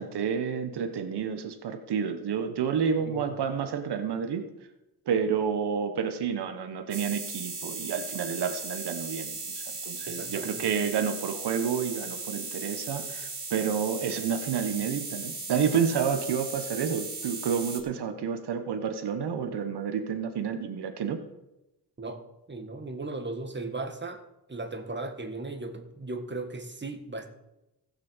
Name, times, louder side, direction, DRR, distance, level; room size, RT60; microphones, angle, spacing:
voice 1, 0.0-4.4 5.1-21.2, right 7 dB, 80° right, 8 dB, 1.4 m, -30 dB
sound 1, 6.9-17.8, right 3 dB, 50° right, 3.2 m, -37 dB
voice 2, 10.1-10.6 22.0-22.2 22.5-24.2 24.5-27.3, right 2 dB, 25° right, 6 dB, 1.7 m, -37 dB
15.5 x 6.7 x 7.3 m, 0.96 s
cardioid pair, 90°, 40 cm